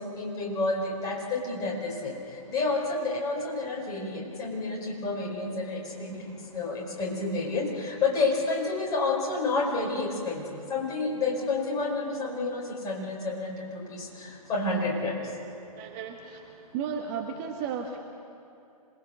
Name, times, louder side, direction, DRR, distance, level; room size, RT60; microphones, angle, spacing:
voice 1, 0.0-2.1 2.5-6.2 6.5-10.4 10.7-13.6 13.9-14.0 14.5-15.1, left 3 dB, 20° left, -2 dB, 4.8 m, -29 dB
voice 2, 15.8-16.4 16.7-18.0, right 7 dB, 30° right, 2 dB, 1.6 m, -34 dB
27.0 x 20.5 x 6.5 m, 2.7 s
figure-of-eight pair, 130°, 20 cm